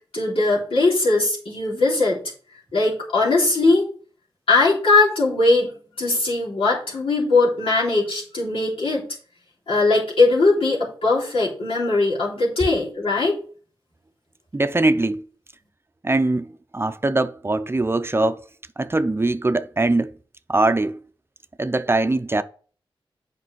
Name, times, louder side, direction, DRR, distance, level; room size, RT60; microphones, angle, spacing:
voice 1, 0.1-2.2 2.7-3.9 4.5-5.7 6.0-9.0 9.7-13.3, left 3 dB, 90° left, 3.3 m, -20 dB
voice 2, 14.5-15.2 16.0-18.4 18.8-20.1 20.5-21.0 21.6-22.4, right 2 dB, 25° right, 0.6 m, -21 dB
8.6 x 5.2 x 4.6 m
wide cardioid pair, 75°, 9 cm